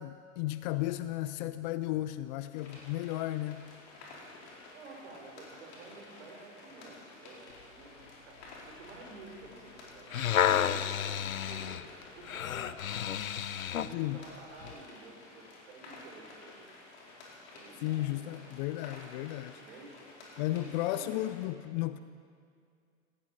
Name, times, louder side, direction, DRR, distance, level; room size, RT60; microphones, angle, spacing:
voice 1, 0.0-3.7 13.9-14.2 17.8-19.6 20.4-22.0, left 15 dB, 35° left, 13 dB, 0.4 m, -34 dB
sound 1, 2.5-21.4, left 2 dB, 55° left, 4.3 m, -52 dB
voice 2, 4.7-11.8 12.1-13.2 13.6-16.7 17.5-18.4 19.5-20.0 20.3-21.2, right 3 dB, 60° right, 1 dB, 3.8 m, -51 dB
sound 2, 9.9-14.0 14.6-14.7, left 10 dB, 80° left, 0.6 m, -31 dB
18.5 x 17.0 x 4.3 m, 2.2 s
figure-of-eight pair, 90°, 41 cm